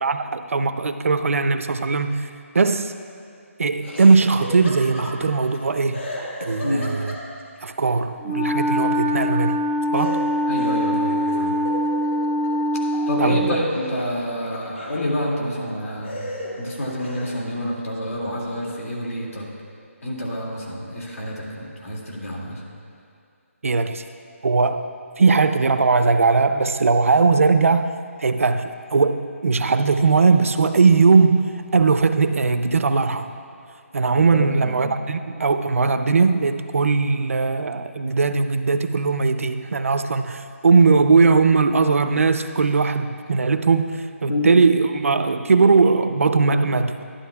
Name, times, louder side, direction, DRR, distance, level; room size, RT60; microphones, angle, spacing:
voice 1, 0.0-2.3 2.5-2.9 3.6-6.0 6.4-7.1 7.6-9.6 9.9-10.2 13.2-13.6 23.6-24.0 24.4-24.9 25.2-27.9 28.2-33.3 33.9-46.9, right 4 dB, 65° right, 9 dB, 0.5 m, -19 dB
Laughter, 3.8-5.6 5.9-7.6 9.9-13.1 13.4-15.1 15.6-15.7 16.0-17.4, left 1 dB, 55° left, 1.7 m, -35 dB
voice 2, 6.6-6.9 10.5-11.5 13.1-16.3 16.6-19.5 20.0-22.6 34.6-34.7 44.3-44.5, left 1 dB, 80° left, -3 dB, 2.2 m, -28 dB
Wind instrument woodwind instrument, 8.2-13.6, equal, 5° left, 0.4 m, -23 dB
11.5 x 11.0 x 2.3 m, 2.4 s
hypercardioid pair, 175°, 8 cm